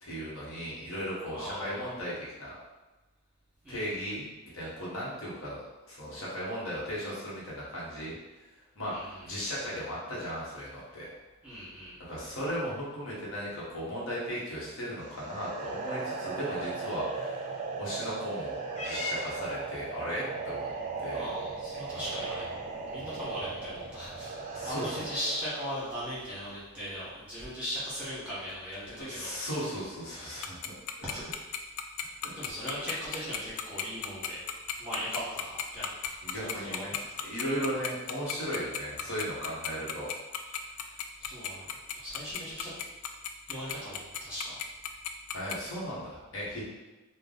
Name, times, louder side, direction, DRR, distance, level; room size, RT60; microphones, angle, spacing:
voice 1, 0.0-2.6 3.7-4.3 4.5-8.1 8.8-11.1 12.0-20.6 21.0-21.3 24.5-25.1 29.0-30.7 32.2-32.4 36.2-40.1 45.3-46.6, equal, 65° left, -7 dB, 1.1 m, -36 dB
voice 2, 1.3-1.9 3.6-4.1 8.9-9.2 11.4-12.0 21.1-22.4 22.8-29.3 31.0-31.2 32.4-34.4 34.8-36.8 40.5-42.7 43.4-44.6, equal, 5° right, -10 dB, 1.3 m, -39 dB
sound 1, 15.0-26.2, right 4 dB, 35° right, 0.4 m, -38 dB
Purr / Meow, 18.7-25.2, left 2 dB, 30° left, 0.6 m, -44 dB
Tick-tock, 30.4-45.5, left 10 dB, 80° left, 0.3 m, -34 dB
3.3 x 2.2 x 3.8 m, 1.1 s
head